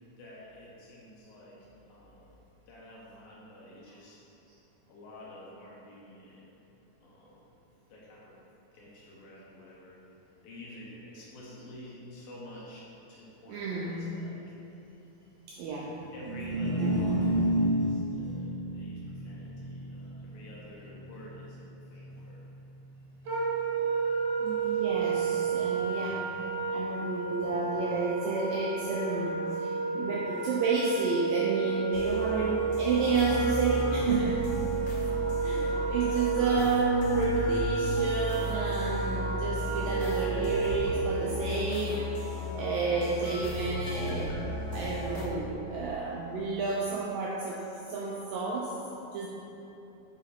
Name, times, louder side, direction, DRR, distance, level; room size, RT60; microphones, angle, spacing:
voice 1, 0.2-1.6 1.9-2.3 2.7-4.2 4.9-6.5 7.0-7.5 7.9-8.4 8.7-10.0 10.4-14.5 16.1-21.7 21.9-22.4 27.9-28.0 36.0-36.9, left 1 dB, 70° left, -5 dB, 2.7 m, -49 dB
voice 2, 13.5-14.2 15.5-16.0 24.4-26.2 26.7-34.5 35.4-44.4 44.7-47.6 47.9-48.8 49.1-49.3, right 4 dB, 85° right, -3 dB, 2.0 m, -31 dB
sound 1, 16.1-22.5, right 1 dB, 50° right, 1.3 m, -31 dB
Wind instrument woodwind instrument, 23.3-41.4, right 5 dB, 65° right, 2.1 m, -31 dB
sound 2, 31.9-45.3, left 1 dB, 90° left, 1.7 m, -35 dB
7.5 x 5.0 x 4.3 m, 3.0 s
omnidirectional pair, 4.6 m